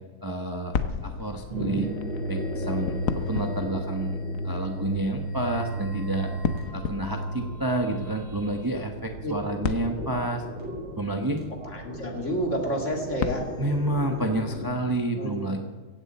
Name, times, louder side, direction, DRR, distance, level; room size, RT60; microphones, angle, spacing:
voice 1, 0.2-0.8 1.0-1.9 2.3-4.2 4.4-6.3 6.7-10.4 11.0-11.4 13.6-15.6, right 1 dB, 15° right, 3 dB, 0.7 m, -29 dB
sound 1, 0.7-13.6, left 7 dB, 60° left, 0.8 m, -36 dB
sound 2, 1.5-14.7, right 1 dB, 75° right, 5.3 m, -34 dB
voice 2, 11.6-13.5 15.2-15.5, equal, 35° left, 1 dB, 2.7 m, -29 dB
16.5 x 16.0 x 4.3 m, 1.3 s
omnidirectional pair, 2.4 m